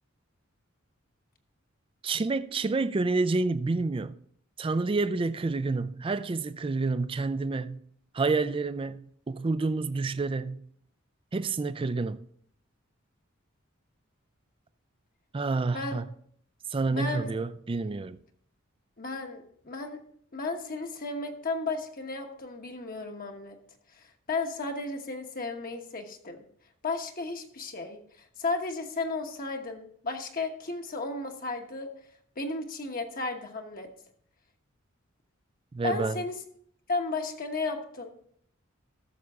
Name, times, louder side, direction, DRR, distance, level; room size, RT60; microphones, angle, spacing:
voice 1, 2.0-4.1 4.6-7.8 8.1-10.6 11.3-12.3 15.3-16.0 16.7-18.2 35.7-36.2, right 3 dB, 25° right, 0.4 m, -29 dB
voice 2, 15.7-16.0 16.9-17.3 19.0-20.0 20.3-23.6 24.3-26.4 26.8-28.0 28.4-31.9 32.4-33.9 35.8-36.4 36.9-38.1, left 3 dB, 45° left, 1.2 m, -34 dB
14.0 x 6.6 x 3.6 m
head